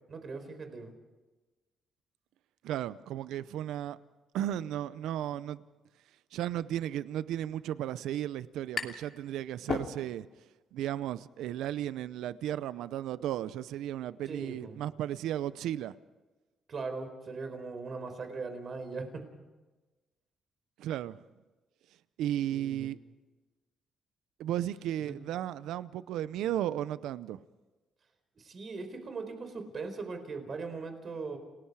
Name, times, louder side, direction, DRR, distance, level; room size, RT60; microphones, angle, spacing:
voice 1, 0.1-0.9 14.3-14.7 16.7-19.3 22.5-22.9 25.0-25.2 28.4-31.4, right 4 dB, 45° right, 4.3 m, -40 dB
voice 2, 2.6-4.0 4.3-5.6 6.3-10.3 10.7-15.9 20.8-21.2 22.2-23.0 24.4-27.4, right 12 dB, 85° right, 0.7 m, -34 dB
sound 1, 8.4-9.2 9.5-10.4, left 5 dB, 55° left, 2.7 m, -36 dB
30.0 x 19.0 x 4.8 m
cardioid pair, 90°, 0 cm